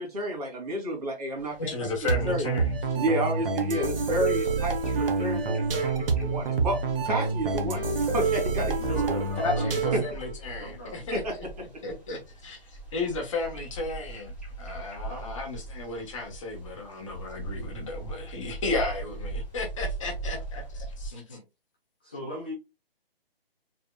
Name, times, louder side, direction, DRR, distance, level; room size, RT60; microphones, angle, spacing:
voice 1, 0.0-1.7 2.0-2.5 3.0-6.8 7.0-9.2 9.9-10.0 11.1-11.3, right 1 dB, 40° right, 2.2 m, -30 dB
sound 1, 1.4-21.1, right 3 dB, 5° right, 2.0 m, -41 dB
voice 2, 1.5-2.8 9.4-11.5 11.8-20.6, left 3 dB, 35° left, 1.1 m, -34 dB
sound 2, 2.1-10.2, right 4 dB, 70° right, 1.1 m, -27 dB
voice 3, 8.8-10.1 10.6-11.2 12.1-12.2 15.1-15.2 21.1-21.4 22.0-22.5, left 1 dB, 10° left, 0.4 m, -39 dB
4.5 x 3.7 x 2.2 m
figure-of-eight pair, 150°, 29 cm